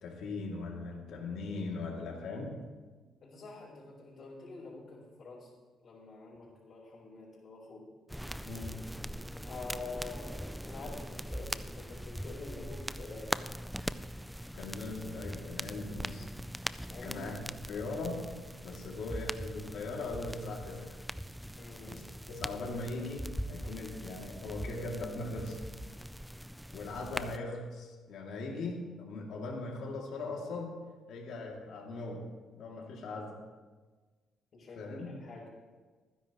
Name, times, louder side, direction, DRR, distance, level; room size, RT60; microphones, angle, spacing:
voice 1, 0.0-2.6 8.4-8.8 14.5-16.3 17.0-17.4 17.7-18.2 18.6-21.0 21.9-22.0 22.3-25.6 26.7-30.8 31.1-32.3 32.6-33.4 34.8-35.1, left 3 dB, 80° left, -1 dB, 2.6 m, -39 dB
voice 2, 3.2-5.5 5.8-7.9 9.4-13.6 16.8-17.2 21.5-22.0 34.5-35.5, left 3 dB, 55° left, -7 dB, 4.2 m, -46 dB
sound 1, 8.1-27.4, equal, ahead, 0.4 m, -41 dB
26.0 x 10.0 x 3.1 m, 1.4 s
cardioid pair, 90°, 0 cm